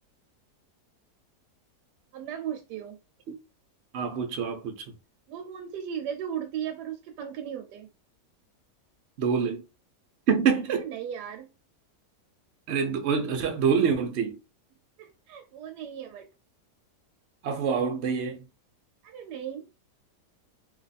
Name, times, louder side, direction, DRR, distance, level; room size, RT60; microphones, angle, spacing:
voice 1, 2.1-3.0 5.3-7.9 10.8-11.5 15.0-16.3 19.0-19.6, right 9 dB, 75° right, 1.1 m, -36 dB
voice 2, 3.9-4.8 9.2-9.6 10.3-10.8 12.7-14.4 17.4-18.4, right 6 dB, 60° right, 0.7 m, -26 dB
2.7 x 2.4 x 4.0 m
omnidirectional pair, 1.8 m